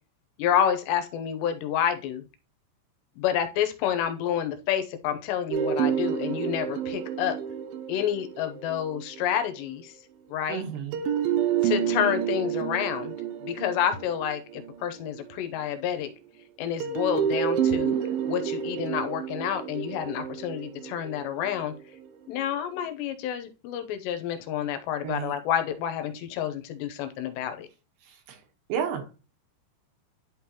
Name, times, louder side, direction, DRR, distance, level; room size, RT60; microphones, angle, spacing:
voice 1, 0.4-2.2 3.2-7.4 7.9-9.9 10.3-10.6 11.6-13.1 13.4-16.1 16.6-18.0 18.3-21.7 22.3-27.7, left 9 dB, 80° left, 8 dB, 2.9 m, -29 dB
sound 1, 5.5-9.4 10.9-15.4 16.8-22.0, right 8 dB, 90° right, 2.0 m, -29 dB
voice 2, 10.5-11.0 25.0-25.4 28.0-28.4 28.7-29.2, right 7 dB, 75° right, 4 dB, 3.2 m, -32 dB
11.0 x 3.8 x 2.9 m, 0.32 s
omnidirectional pair, 5.1 m